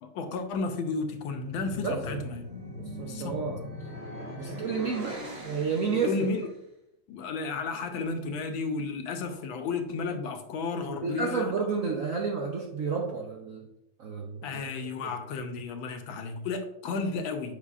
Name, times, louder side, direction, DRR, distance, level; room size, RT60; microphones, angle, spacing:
voice 1, 0.0-2.6 3.1-3.4 5.9-6.5 7.1-11.6 14.4-17.5, left 4 dB, 75° left, 6 dB, 1.4 m, -33 dB
sound 1, 1.2-6.5, left 1 dB, 40° right, 1.1 m, -40 dB
voice 2, 2.7-3.7 4.4-6.3 10.9-13.7 14.0-14.6 15.0-15.1, right 5 dB, 80° right, 0 dB, 0.7 m, -31 dB
8.0 x 5.4 x 2.4 m, 0.84 s
omnidirectional pair, 2.4 m